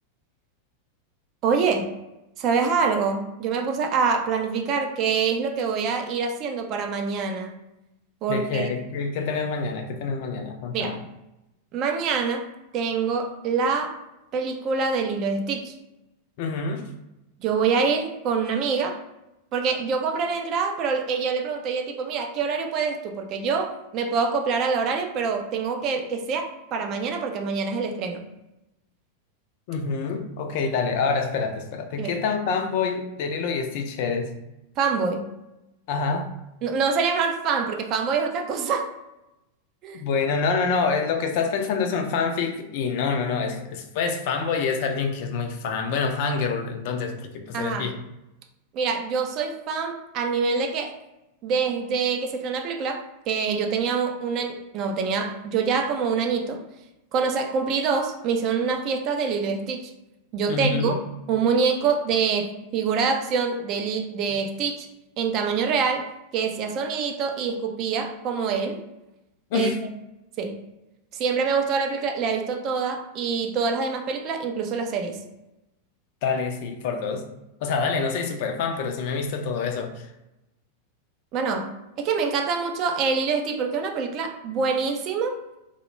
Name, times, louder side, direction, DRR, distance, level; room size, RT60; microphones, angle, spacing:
voice 1, 1.4-1.9 2.4-7.6 8.2-8.7 10.7-11.0 11.7-12.5 12.7-14.0 14.3-15.7 17.4-19.0 19.5-28.2 32.0-32.1 34.8-35.3 36.6-38.9 39.8-40.0 47.5-47.9 48.7-50.9 51.4-56.6 57.1-59.9 60.3-60.9 61.3-64.9 65.2-68.8 69.5-69.7 70.4-70.6 71.1-75.2 81.3-85.3, right 5 dB, 35° right, 4 dB, 0.4 m, -25 dB
voice 2, 8.3-11.0 16.4-16.8 29.7-34.3 35.9-36.3 39.9-47.9 60.5-60.9 69.5-69.8 76.2-77.2 77.6-80.0, left 5 dB, 50° left, 5 dB, 0.3 m, -26 dB
2.1 x 2.1 x 3.0 m, 0.92 s
figure-of-eight pair, 90°, 0 cm